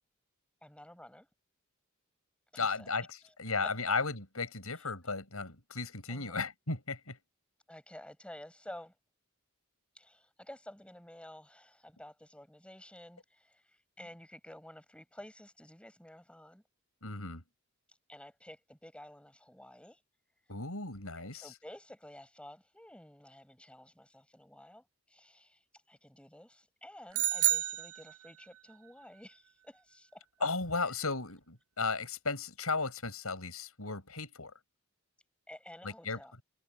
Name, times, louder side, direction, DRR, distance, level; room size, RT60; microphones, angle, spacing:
voice 1, 0.6-1.3 2.5-2.9 3.6-3.7 4.8-4.9 6.1-6.4 7.7-8.9 10.0-16.6 18.1-20.0 21.2-25.6 25.9-30.2 35.5-36.3, left 1 dB, 5° left, 7.2 m, -52 dB
voice 2, 2.6-7.2 17.0-17.4 20.5-21.5 30.4-34.5 35.8-36.2, left 4 dB, 85° left, 6.5 m, -35 dB
sound 1, 27.1-28.6, right 13 dB, 75° right, 0.7 m, -30 dB
head